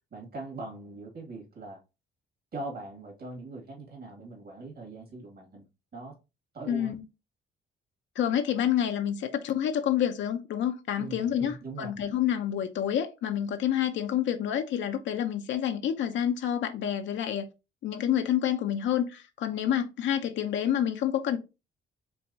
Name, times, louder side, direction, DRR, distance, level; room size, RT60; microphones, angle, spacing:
voice 1, 0.1-1.8 2.5-5.7 5.9-6.1 6.5-6.9 11.0-11.9, right 2 dB, 50° right, 2.2 m, -41 dB
voice 2, 6.7-7.0 8.2-17.5 17.8-21.4, left 10 dB, 70° left, 0.6 m, -28 dB
4.6 x 3.4 x 2.7 m
cardioid pair, 90°, 20 cm